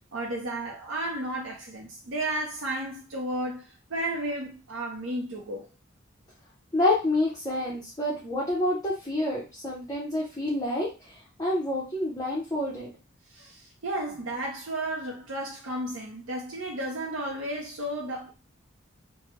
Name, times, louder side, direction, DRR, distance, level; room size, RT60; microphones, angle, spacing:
voice 1, 0.1-5.7 13.3-18.3, right 1 dB, 85° right, 0.7 m, -33 dB
voice 2, 6.7-10.9 11.4-12.9, left 1 dB, 20° left, 0.7 m, -28 dB
3.3 x 2.1 x 3.0 m
head